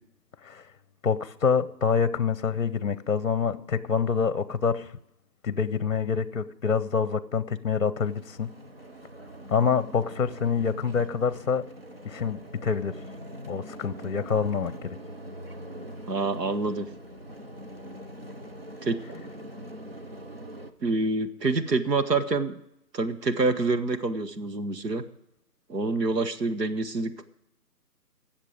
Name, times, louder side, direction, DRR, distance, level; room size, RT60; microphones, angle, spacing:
voice 1, 1.0-4.9 5.4-8.5 9.5-11.6 12.0-12.9 13.5-15.0, left 6 dB, 50° left, 17 dB, 0.7 m, -26 dB
sound 1, 8.0-20.7, equal, 40° right, 0.6 m, -43 dB
voice 2, 16.1-16.9 18.8-19.3 20.8-22.5 22.9-25.0 25.7-27.2, right 3 dB, 70° right, 8 dB, 1.4 m, -27 dB
17.0 x 7.4 x 5.0 m, 0.82 s
figure-of-eight pair, 165°, 50 cm